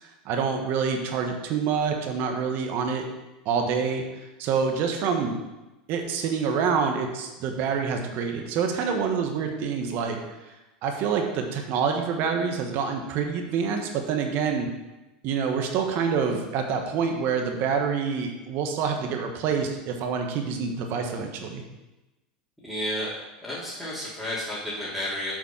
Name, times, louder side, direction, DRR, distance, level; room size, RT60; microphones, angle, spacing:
voice 1, 0.2-3.0 3.4-4.0 4.4-5.4 5.9-10.2 10.8-14.7 15.2-21.6, right 6 dB, 50° right, 3 dB, 1.3 m, -26 dB
voice 2, 22.6-23.1 23.4-25.3, left 1 dB, 5° left, -10 dB, 2.6 m, -31 dB
7.6 x 4.1 x 5.7 m, 1.0 s
hypercardioid pair, 105°, 5 cm